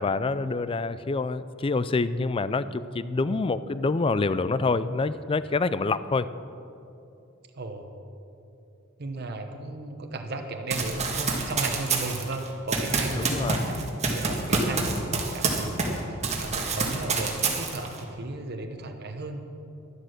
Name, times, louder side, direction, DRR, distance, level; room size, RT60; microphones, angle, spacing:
voice 1, 0.0-6.3 13.2-13.7, left 3 dB, 25° left, 15 dB, 0.4 m, -26 dB
voice 2, 7.6-7.9 9.0-19.4, right 2 dB, 55° right, 4 dB, 1.0 m, -35 dB
Run, 10.7-16.0 16.2-18.0, right 3 dB, 35° right, 1.7 m, -27 dB
12.0 x 11.5 x 6.5 m, 2.7 s
head